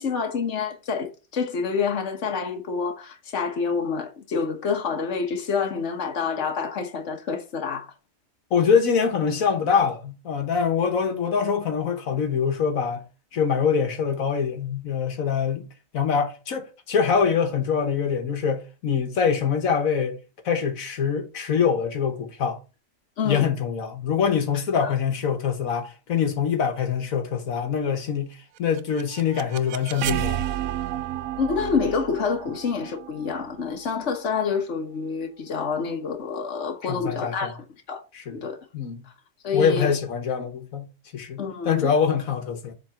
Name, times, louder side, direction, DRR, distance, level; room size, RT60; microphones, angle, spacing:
voice 1, 0.0-7.9 23.2-23.5 24.8-24.9 31.4-37.6 37.9-38.0 38.3-38.6 39.4-39.9 41.4-41.9, left 5 dB, 60° left, 1.6 m, -27 dB
voice 2, 8.5-13.0 13.3-15.6 15.9-20.2 20.4-22.6 23.2-30.5 36.8-37.5 38.1-38.4 38.7-39.0 39.5-40.9 41.1-42.7, left 6 dB, 80° left, 1.6 m, -24 dB
sound 1, 28.6-34.4, right 12 dB, 90° right, 1.1 m, -32 dB
7.4 x 3.9 x 5.7 m
omnidirectional pair, 1.4 m